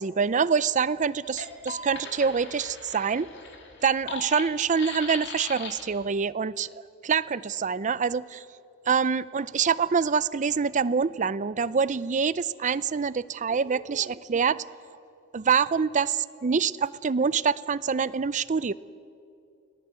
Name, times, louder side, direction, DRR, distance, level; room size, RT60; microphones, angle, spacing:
voice 1, 0.0-3.3 3.8-8.4 8.9-14.7 15.3-18.7, right 6 dB, 35° right, 18 dB, 0.5 m, -26 dB
sound 1, 1.2-6.0, left 4 dB, 55° left, 3.1 m, -39 dB
29.5 x 19.0 x 8.3 m, 2.6 s
head